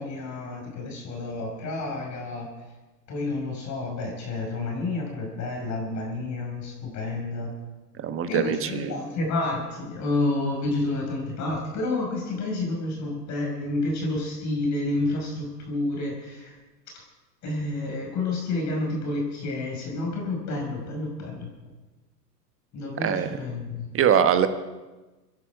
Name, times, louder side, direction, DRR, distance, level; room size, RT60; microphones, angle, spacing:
voice 1, 0.0-2.5 3.1-7.5 8.3-16.5 17.4-21.5 22.7-24.0, left 2 dB, 35° left, 0 dB, 5.6 m, -29 dB
voice 2, 8.0-9.0 23.0-23.3 23.9-24.5, right 8 dB, 25° right, 9 dB, 1.3 m, -22 dB
26.0 x 11.0 x 4.8 m, 1.2 s
hypercardioid pair, 105°, 48 cm